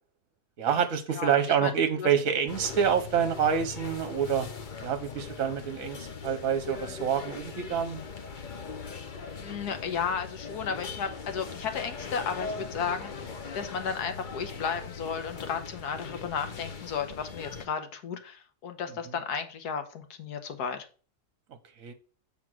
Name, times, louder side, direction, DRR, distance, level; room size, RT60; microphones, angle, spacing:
voice 1, 0.6-4.5 4.8-8.0 21.8-21.9, right 7 dB, 60° right, 9 dB, 1.1 m, -27 dB
sound 1, 2.5-17.7, left 5 dB, 45° left, 0.6 m, -40 dB
voice 2, 9.4-20.8, left 6 dB, 70° left, 8 dB, 1.5 m, -34 dB
7.5 x 3.6 x 6.2 m, 0.38 s
omnidirectional pair, 1.8 m